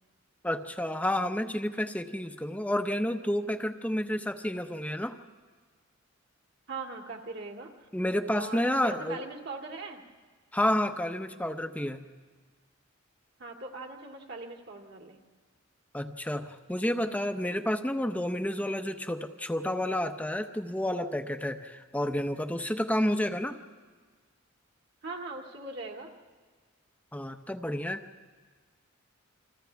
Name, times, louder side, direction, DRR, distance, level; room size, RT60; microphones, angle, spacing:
voice 1, 0.4-5.2 7.9-9.2 10.5-12.0 15.9-23.6 27.1-28.1, left 1 dB, 5° left, 7 dB, 0.7 m, -30 dB
voice 2, 6.7-7.9 8.3-10.0 13.4-15.2 25.0-26.1, right 3 dB, 55° right, 2 dB, 2.3 m, -40 dB
29.0 x 26.0 x 3.5 m, 1.5 s
head